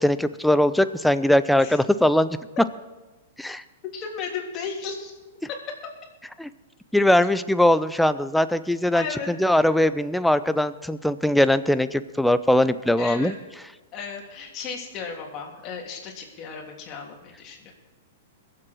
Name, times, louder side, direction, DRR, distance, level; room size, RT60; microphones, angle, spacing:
voice 1, 0.0-2.4 3.4-3.6 6.4-6.5 6.9-13.3, left 1 dB, ahead, 13 dB, 0.6 m, -21 dB
voice 2, 3.9-5.1 5.4-5.6 8.9-9.3 13.0-13.4 13.9-17.7, left 6 dB, 35° left, 0 dB, 3.2 m, -35 dB
22.0 x 7.7 x 4.6 m, 1.1 s
hypercardioid pair, 115°, 0 cm